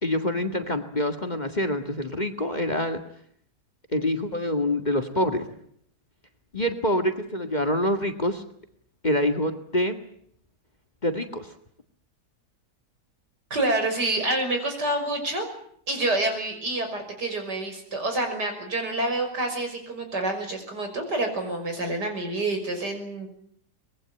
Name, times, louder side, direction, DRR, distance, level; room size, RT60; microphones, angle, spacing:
voice 1, 0.0-3.0 3.9-5.6 6.5-8.4 9.0-10.0 11.0-11.5, left 1 dB, 25° left, 8 dB, 2.0 m, -26 dB
voice 2, 13.5-15.5 15.9-23.3, right 2 dB, 75° right, 5 dB, 6.4 m, -28 dB
24.0 x 21.0 x 9.0 m, 0.66 s
omnidirectional pair, 1.8 m